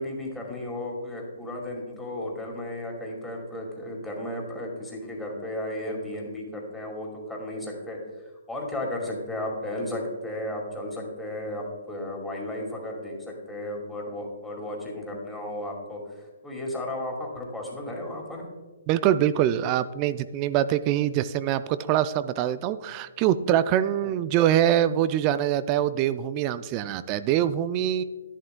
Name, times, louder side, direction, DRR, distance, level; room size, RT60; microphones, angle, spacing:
voice 1, 0.0-8.0 8.5-18.4 24.0-24.1, left 1 dB, 5° left, -2 dB, 2.1 m, -34 dB
voice 2, 18.9-28.0, right 11 dB, 30° right, 14 dB, 0.3 m, -24 dB
11.0 x 10.5 x 2.2 m, 1.3 s
figure-of-eight pair, 135°, 0 cm